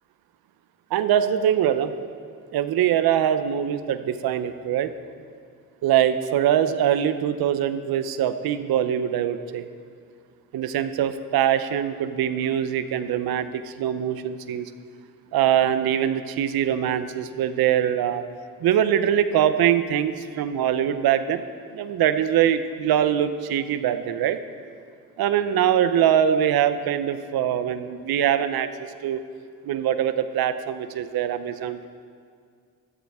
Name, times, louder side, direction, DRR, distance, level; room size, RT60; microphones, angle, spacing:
voice 1, 0.9-1.9 2.5-4.9 5.8-9.7 10.5-14.7 15.3-18.2 18.6-21.4 21.7-24.4 25.2-28.7 29.0-29.2 29.6-31.9, right 10 dB, 85° right, 11 dB, 0.7 m, -23 dB
16.5 x 13.5 x 3.6 m, 2.2 s
cardioid pair, 60°, 36 cm